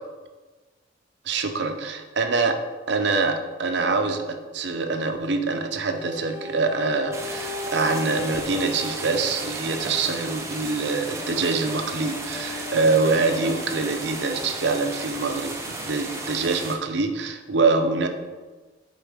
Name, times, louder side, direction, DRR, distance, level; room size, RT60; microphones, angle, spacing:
voice 1, 1.2-2.6 2.9-18.1, right 3 dB, 65° right, 6 dB, 0.6 m, -25 dB
sound 1, 5.9-15.0 15.6-15.7, left 2 dB, 65° left, 1.4 m, -38 dB
sound 2, 7.1-16.8, right 2 dB, 15° right, 0.6 m, -34 dB
7.6 x 4.7 x 3.5 m, 1.3 s
head